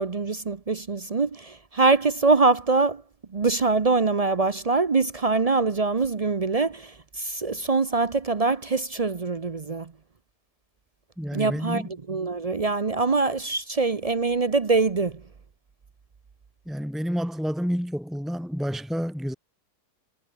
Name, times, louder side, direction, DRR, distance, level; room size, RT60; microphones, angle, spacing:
voice 1, 0.0-3.0 3.3-9.9 11.3-15.2, right 3 dB, 40° right, 0.5 m, -24 dB
voice 2, 11.2-11.9 16.7-19.3, equal, ahead, 2.7 m, -29 dB
omnidirectional pair, 1.8 m